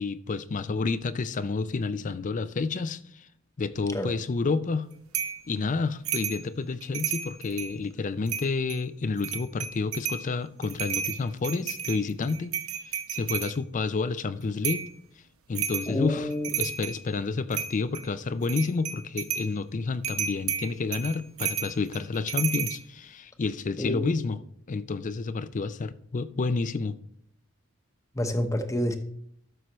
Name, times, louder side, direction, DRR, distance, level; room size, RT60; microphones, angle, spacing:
voice 1, 0.0-3.3 3.6-4.9 5.5-12.6 12.9-14.9 15.5-24.4 24.7-27.0, left 4 dB, 35° left, 0.4 m, -30 dB
sound 1, 5.1-5.4 6.1-6.4 6.8-7.8 8.3-8.8 9.2-10.3 10.6-13.5 14.6-14.9 15.6-15.9 16.3-17.0 17.5-18.1 18.4-19.5 20.0-22.8, right 8 dB, 90° right, 1.0 m, -32 dB
voice 2, 15.9-16.6 23.8-24.2 28.1-29.0, left 1 dB, 15° left, 0.9 m, -28 dB
12.5 x 6.3 x 3.1 m
head